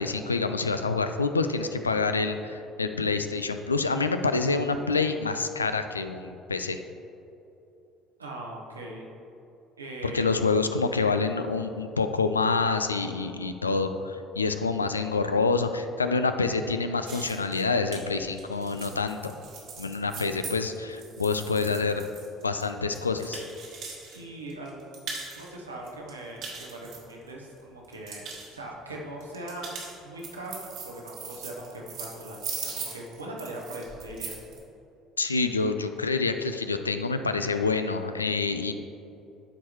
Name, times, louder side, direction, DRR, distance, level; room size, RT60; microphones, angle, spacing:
voice 1, 0.0-6.8 10.0-19.3 19.8-22.1 22.4-23.4 35.2-38.7, left 4 dB, 85° left, 8 dB, 0.3 m, -27 dB
voice 2, 8.2-9.1 9.8-10.3 24.1-25.1 25.4-28.3 28.5-29.7 30.0-32.4 32.7-34.3, right 1 dB, 85° right, -2 dB, 1.0 m, -40 dB
sound 1, 17.1-24.2 24.5-25.5 25.9-27.5 27.8-28.5 29.2-34.6, right 5 dB, 55° right, 1.5 m, -40 dB
13.0 x 4.7 x 3.0 m, 2.8 s
figure-of-eight pair, 55°, 0 cm